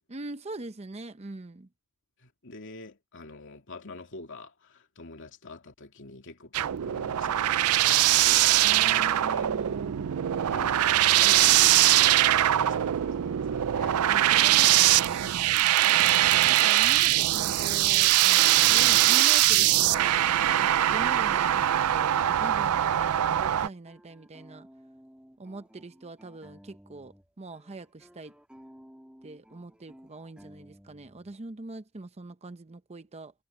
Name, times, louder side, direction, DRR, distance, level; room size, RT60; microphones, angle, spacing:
voice 1, 0.1-1.7 8.6-10.1 14.1-15.7 16.4-20.2 20.6-24.7 25.4-28.3 29.2-33.3, right 2 dB, 30° right, 0.7 m, -42 dB
voice 2, 2.2-9.5 10.5-10.8 11.1-14.1, left 3 dB, 60° left, 2.7 m, -45 dB
sound 1, 6.5-23.7, right 13 dB, 80° right, 0.4 m, -22 dB
sound 2, 23.9-27.3 27.5-31.3, equal, 5° right, 2.8 m, -54 dB
head